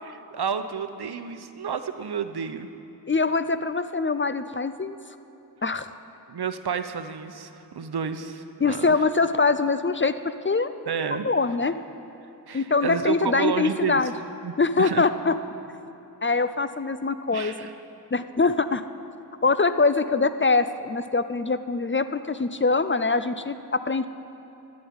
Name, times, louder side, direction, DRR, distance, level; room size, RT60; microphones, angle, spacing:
voice 1, 0.0-2.7 6.3-9.0 10.9-11.3 12.5-14.1 14.4-15.1 17.3-17.7, right 7 dB, 70° right, 9 dB, 0.9 m, -30 dB
voice 2, 3.1-5.0 5.6-5.9 8.6-10.7 11.2-11.7 12.5-14.1 14.6-15.3 16.2-17.7 18.1-18.8 19.4-24.1, left 4 dB, 30° left, 11 dB, 0.4 m, -23 dB
14.0 x 10.5 x 8.7 m, 2.8 s
wide cardioid pair, 105°, 40 cm